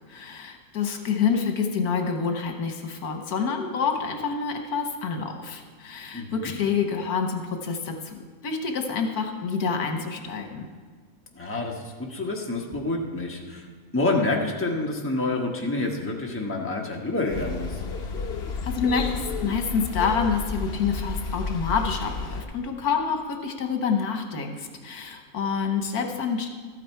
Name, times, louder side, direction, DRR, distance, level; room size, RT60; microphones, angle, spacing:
voice 1, 0.1-10.7 18.6-26.5, left 6 dB, 75° left, 4 dB, 1.5 m, -27 dB
voice 2, 6.1-6.6 11.3-13.6 13.9-17.8, left 2 dB, 10° left, -1 dB, 1.1 m, -28 dB
sound 1, 17.3-22.4, left 3 dB, 50° left, 1.1 m, -32 dB
13.0 x 9.2 x 4.5 m, 1.6 s
omnidirectional pair, 1.6 m